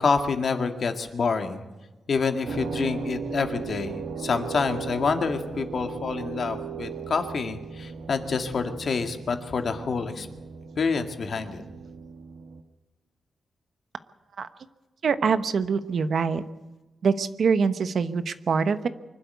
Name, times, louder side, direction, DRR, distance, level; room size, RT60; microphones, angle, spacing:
voice 1, 0.0-1.6 2.1-10.3 10.8-11.6, left 5 dB, 45° left, 6 dB, 2.0 m, -27 dB
sound 1, 2.5-12.6, right 6 dB, 65° right, 1.6 m, -37 dB
voice 2, 15.0-16.4 17.0-18.9, right 5 dB, 50° right, 12 dB, 1.0 m, -24 dB
25.0 x 12.0 x 9.4 m, 1.1 s
wide cardioid pair, 160°, 0 cm